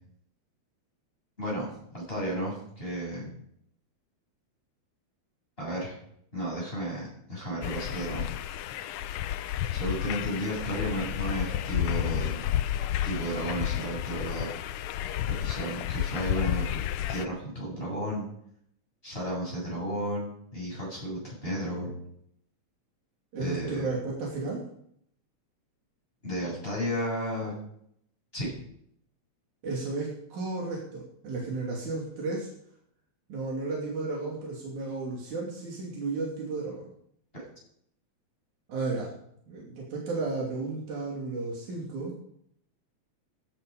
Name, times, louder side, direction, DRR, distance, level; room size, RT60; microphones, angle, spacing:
voice 1, 1.9-3.3 5.6-6.0 6.3-8.2 9.7-12.4 13.0-14.5 15.3-16.7 17.1-18.2 19.0-22.0 23.4-24.0 26.2-27.5 28.3-28.5 37.3-37.4, equal, 20° left, -4 dB, 7.8 m, -33 dB
sound 1, 7.6-17.3, left 12 dB, 90° left, 1.3 m, -31 dB
voice 2, 23.3-24.6 29.6-32.5 33.3-36.9 38.7-39.2 39.5-42.1, right 3 dB, 85° right, -3 dB, 4.3 m, -33 dB
17.5 x 10.0 x 5.3 m, 0.70 s
omnidirectional pair, 3.3 m